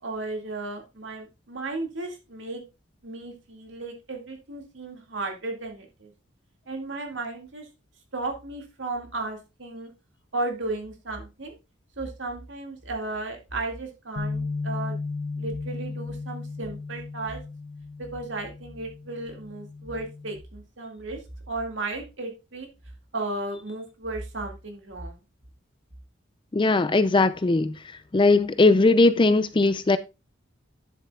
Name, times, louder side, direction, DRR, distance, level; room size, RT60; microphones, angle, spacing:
voice 1, 0.0-2.6 3.0-6.1 6.7-7.7 8.1-9.9 10.3-11.5 12.0-15.0 15.4-17.4 18.0-21.2 21.5-22.7 23.1-25.2, right 2 dB, 65° right, 2.2 m, -34 dB
Bass guitar, 14.2-20.4, left 3 dB, 60° left, 0.8 m, -35 dB
voice 2, 26.5-27.7 28.1-30.0, left 3 dB, 25° left, 0.4 m, -19 dB
9.9 x 7.4 x 2.4 m
head